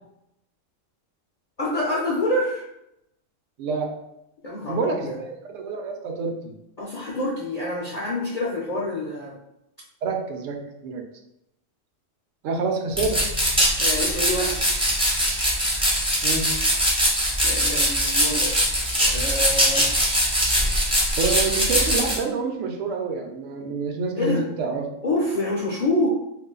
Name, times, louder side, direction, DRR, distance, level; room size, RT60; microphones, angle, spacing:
voice 1, 1.6-2.7 4.4-5.2 6.8-9.3 13.8-14.6 17.4-18.6 19.0-19.9 24.2-24.4 25.0-26.1, left 1 dB, 60° left, -5 dB, 0.4 m, -26 dB
voice 2, 3.6-3.9 4.7-6.5 10.0-11.0 12.4-13.2 16.2-16.4 21.2-24.9, right 4 dB, 80° right, 3 dB, 0.9 m, -27 dB
sound 1, 12.9-22.2, equal, 5° right, 0.4 m, -22 dB
2.5 x 2.3 x 3.7 m, 0.83 s
omnidirectional pair, 1.3 m